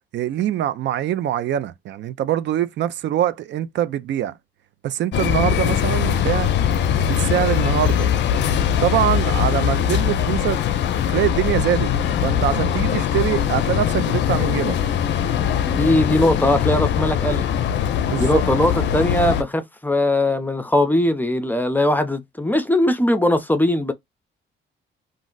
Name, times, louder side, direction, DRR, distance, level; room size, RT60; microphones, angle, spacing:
voice 1, 0.1-4.4 4.8-6.5 7.0-8.1 8.8-10.6 11.1-11.9 12.2-14.8 18.1-18.4, right 11 dB, 65° right, 0.4 m, -23 dB
sound 1, 5.1-19.4, left 9 dB, 65° left, 0.4 m, -21 dB
voice 2, 15.7-17.5 18.2-23.9, left 1 dB, 10° left, 0.5 m, -20 dB
2.5 x 2.0 x 3.8 m
cardioid pair, 90°, 20 cm